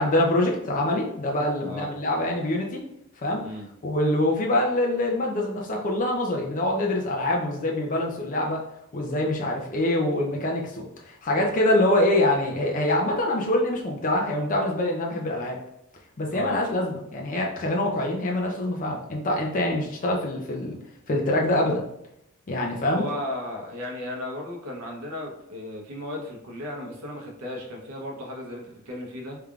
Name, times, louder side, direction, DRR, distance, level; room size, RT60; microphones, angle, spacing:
voice 1, 0.0-2.8 3.2-3.4 3.8-8.6 8.9-15.6 16.2-20.7 21.1-21.9 22.5-23.0, left 1 dB, 35° left, 0 dB, 0.5 m, -25 dB
voice 2, 16.3-16.6 22.9-29.4, left 1 dB, 80° right, -1 dB, 0.8 m, -35 dB
3.5 x 3.3 x 2.3 m, 0.78 s
head